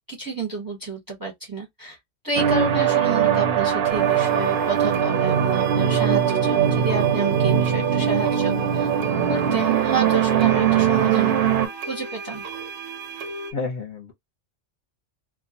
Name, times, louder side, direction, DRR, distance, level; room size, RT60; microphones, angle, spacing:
voice 1, 0.1-2.0 2.2-8.9 9.3-11.3 11.9-12.4, right 3 dB, 20° right, 0.7 m, -30 dB
sound 1, 2.4-11.7, right 9 dB, 65° right, 0.7 m, -21 dB
sound 2, 3.9-13.5, right 4 dB, 90° right, 1.0 m, -35 dB
voice 2, 13.5-14.1, left 4 dB, 50° left, 0.7 m, -30 dB
2.3 x 2.1 x 2.7 m
omnidirectional pair, 1.2 m